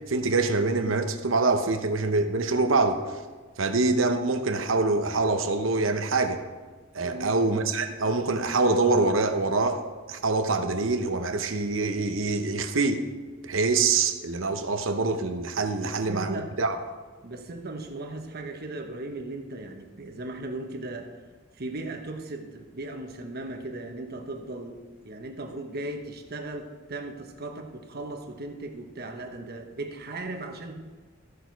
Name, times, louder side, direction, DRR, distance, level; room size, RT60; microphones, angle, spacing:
voice 1, 0.1-3.2 3.6-6.4 6.9-9.8 10.1-13.1 13.4-16.8, right 3 dB, 80° right, 7 dB, 0.9 m, -25 dB
voice 2, 7.0-7.4 15.8-16.5 17.2-21.1 21.6-30.8, right 2 dB, 50° right, 4 dB, 1.1 m, -37 dB
14.5 x 6.6 x 4.6 m, 1.4 s
head